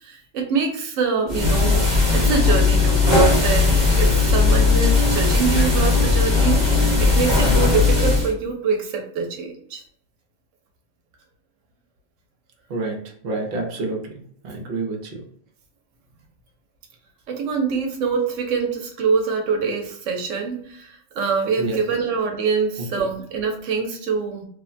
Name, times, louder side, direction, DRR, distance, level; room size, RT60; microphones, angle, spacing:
voice 1, 0.0-1.9 2.1-9.8 17.3-24.5, right 5 dB, 80° right, 3 dB, 0.9 m, -24 dB
sound 1, 1.3-8.3, left 3 dB, 15° right, 1.0 m, -17 dB
voice 2, 13.2-14.0 14.4-15.2 21.6-21.8 23.0-23.1, right 2 dB, 55° right, 2 dB, 0.8 m, -27 dB
3.0 x 2.1 x 2.5 m, 0.63 s
omnidirectional pair, 1.3 m